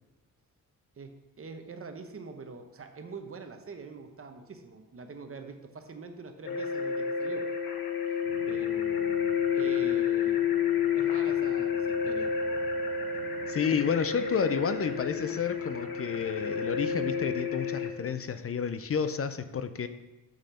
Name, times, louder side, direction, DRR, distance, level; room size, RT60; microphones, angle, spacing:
voice 1, 1.0-7.5 8.5-10.4 10.9-12.3, right 4 dB, 40° right, 6 dB, 0.9 m, -44 dB
sound 1, 6.4-17.9, left 7 dB, 85° left, 1.1 m, -30 dB
sound 2, 8.2-17.4, right 1 dB, 15° left, 1.9 m, -52 dB
voice 2, 13.5-19.9, left 7 dB, 40° left, 11 dB, 0.5 m, -30 dB
6.5 x 6.3 x 5.6 m, 1.1 s
wide cardioid pair, 120°, 35 cm